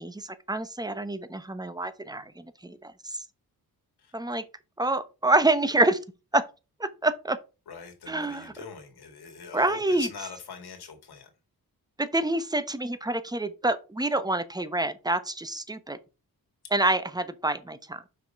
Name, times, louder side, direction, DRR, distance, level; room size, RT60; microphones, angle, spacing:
voice 1, 0.0-3.2 4.1-4.4 4.8-6.0 6.3-6.4 6.8-7.4 8.1-8.5 9.5-10.1 12.0-16.0 16.7-18.0, right 2 dB, 10° right, 0.9 m, -27 dB
voice 2, 7.7-11.3, left 6 dB, 90° left, 2.0 m, -42 dB
6.0 x 4.9 x 5.3 m
cardioid pair, 85°, 38 cm